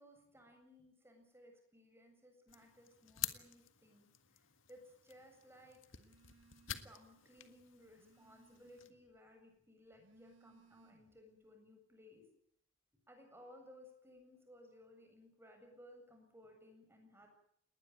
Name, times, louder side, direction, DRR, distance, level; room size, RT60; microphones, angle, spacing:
voice 1, 0.0-4.1 4.3-5.8 6.7-12.3 13.1-17.3, equal, 15° right, 4 dB, 7.6 m, -60 dB
sound 1, 2.5-8.9, left 12 dB, 80° left, 1.8 m, -49 dB
Telephone, 5.9-7.1 7.5-9.2 9.8-11.3, right 3 dB, 75° right, 2.1 m, -68 dB
20.0 x 19.5 x 9.5 m, 0.68 s
head